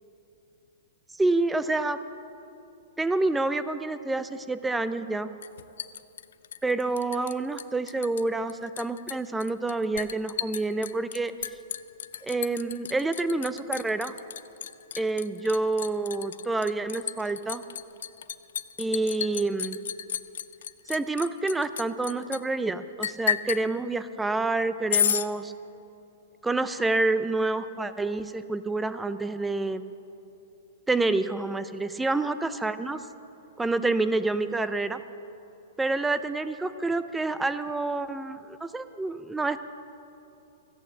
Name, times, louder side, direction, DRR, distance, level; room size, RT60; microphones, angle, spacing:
voice 1, 1.2-2.0 3.0-5.3 6.6-11.3 12.2-14.1 15.0-17.6 18.8-19.8 20.9-25.5 26.4-29.8 30.9-33.0 33.6-35.0 35.8-39.6, right 3 dB, 5° right, 12 dB, 0.4 m, -28 dB
Liquid, 5.4-7.3 7.6-8.2 8.5-22.4 23.0-23.6 24.9-25.3, left 8 dB, 75° left, 0.5 m, -32 dB
14.5 x 8.6 x 7.5 m, 2.8 s
hypercardioid pair, 165°, 0 cm